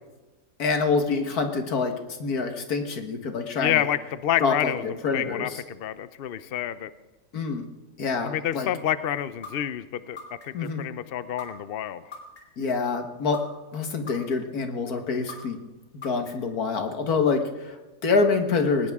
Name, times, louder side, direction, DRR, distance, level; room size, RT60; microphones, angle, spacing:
voice 1, 0.6-3.9 4.4-5.6 7.3-7.6 8.0-8.7 10.5-10.8 12.6-13.4 13.7-15.6 16.0-18.9, left 4 dB, 80° left, 5 dB, 2.0 m, -26 dB
voice 2, 3.6-4.8 5.1-6.9 8.2-10.2 10.4-12.1, left 11 dB, 55° left, 14 dB, 0.6 m, -28 dB
sound 1, 9.4-9.5 10.2-10.7 11.4-11.5 12.1-12.6 13.3-13.4 14.1-14.6 15.3-15.4 16.0-16.5, left 4 dB, 40° left, 3.6 m, -39 dB
20.5 x 19.5 x 3.6 m, 1.2 s
omnidirectional pair, 1.6 m